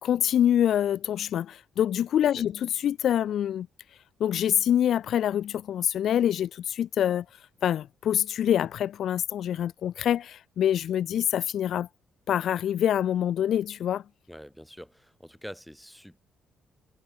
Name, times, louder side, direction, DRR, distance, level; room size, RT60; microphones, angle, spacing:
voice 1, 0.0-3.7 4.2-7.2 7.6-11.9 12.3-14.0, left 10 dB, 70° left, 0.5 m, -25 dB
voice 2, 14.3-16.2, equal, ahead, 3.3 m, -45 dB
cardioid pair, 90°, 0 cm